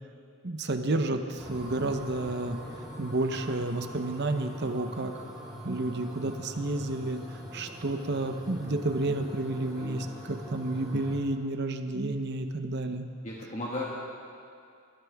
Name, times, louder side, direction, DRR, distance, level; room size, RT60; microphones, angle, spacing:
voice 1, 0.4-2.6 3.0-5.1 5.6-7.2 7.5-13.1, right 2 dB, 50° right, 6 dB, 0.9 m, -30 dB
sound 1, 1.4-11.2, equal, ahead, 4.0 m, -43 dB
voice 2, 13.2-13.8, left 1 dB, 30° left, -5 dB, 1.7 m, -35 dB
27.0 x 14.0 x 3.6 m, 2.4 s
head